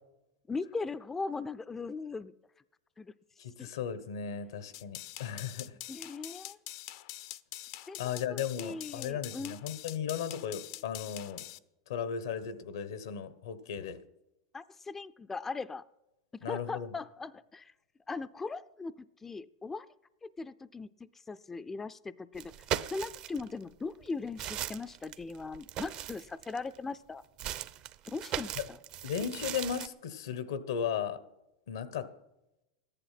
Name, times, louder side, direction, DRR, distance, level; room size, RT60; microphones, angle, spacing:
voice 1, 0.5-2.3 3.0-3.1 3.6-3.7 5.9-6.6 7.9-9.6 14.5-15.8 16.4-17.7 18.1-18.9 19.2-19.9 20.2-20.9 21.3-22.5 22.9-27.2 28.1-28.8, left 4 dB, 15° left, 13 dB, 0.4 m, -39 dB
voice 2, 3.4-5.7 8.0-11.4 11.9-14.0 16.4-16.9 28.6-28.7 29.0-31.2 31.7-32.2, left 8 dB, 85° left, 14 dB, 1.2 m, -36 dB
sound 1, 4.7-11.6, left 15 dB, 65° left, 0.6 m, -45 dB
sound 2, 22.3-23.5 24.0-26.8 27.4-29.9, right 11 dB, 45° right, 0.7 m, -38 dB
14.0 x 11.0 x 5.8 m, 0.93 s
supercardioid pair, 120°, 2 cm